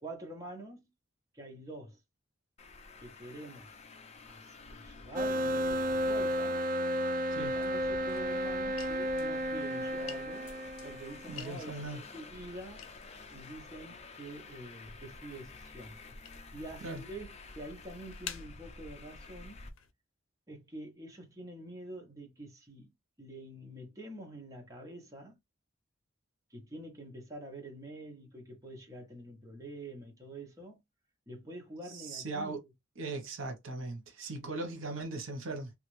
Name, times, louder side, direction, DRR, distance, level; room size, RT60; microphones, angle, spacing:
voice 1, 0.0-0.8 1.3-2.0 3.0-3.8 4.3-6.6 7.3-10.5 10.8-12.8 13.3-16.0 16.5-19.6 20.5-22.9 23.2-25.4 26.5-30.8 31.3-32.6 34.3-34.5, right 1 dB, 15° right, 0.9 m, -46 dB
Traffic noise roadway noise, 2.6-19.7, left 3 dB, 30° left, 0.4 m, -50 dB
sound 1, 5.1-11.6, equal, 45° right, 0.3 m, -33 dB
sound 2, 7.3-19.9, left 8 dB, 85° left, 0.5 m, -53 dB
voice 2, 11.3-12.0 16.8-17.0 31.9-32.6 33.0-35.7, right 3 dB, 80° right, 0.9 m, -39 dB
3.0 x 2.5 x 3.0 m
head